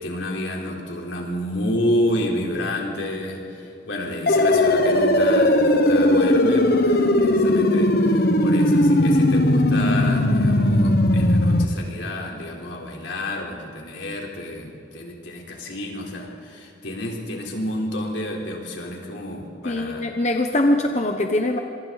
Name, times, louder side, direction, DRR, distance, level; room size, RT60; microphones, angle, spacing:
voice 1, 0.0-20.1, left 1 dB, 85° left, 0 dB, 4.0 m, -29 dB
sound 1, 4.3-11.7, left 1 dB, 55° left, 1.3 m, -18 dB
voice 2, 19.6-21.6, left 1 dB, 40° left, 4 dB, 1.1 m, -22 dB
26.0 x 24.5 x 4.1 m, 2.7 s
head